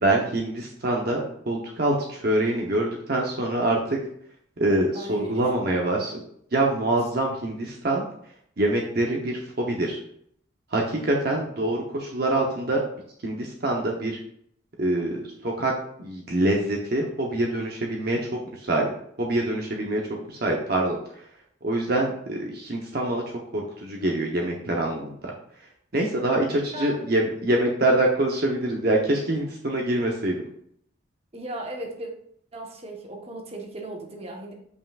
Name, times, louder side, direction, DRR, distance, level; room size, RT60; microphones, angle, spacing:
voice 1, 0.0-4.0 4.6-6.2 6.5-8.0 8.6-10.0 10.7-12.8 13.2-14.2 14.8-15.7 16.0-18.9 19.2-20.0 20.3-21.0 21.6-23.2 23.5-25.2 25.9-30.4, right 1 dB, 50° right, 0 dB, 0.9 m, -25 dB
voice 2, 4.9-5.5 26.7-27.0 31.3-32.1 32.5-34.5, right 1 dB, 30° right, 0 dB, 1.2 m, -36 dB
8.2 x 5.5 x 2.4 m, 0.67 s
head